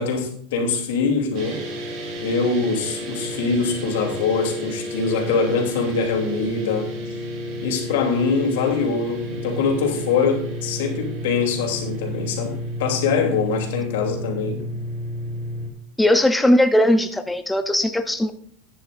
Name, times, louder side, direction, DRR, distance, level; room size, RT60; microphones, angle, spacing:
voice 1, 0.0-1.6 2.2-6.9 7.6-14.7, left 5 dB, 90° left, 1 dB, 2.9 m, -23 dB
sound 1, 1.3-15.7, equal, 50° right, 3.0 m, -31 dB
voice 2, 16.0-18.3, left 1 dB, 5° left, 8 dB, 0.5 m, -18 dB
14.5 x 10.0 x 2.5 m, 0.62 s
supercardioid pair, 155°, 0 cm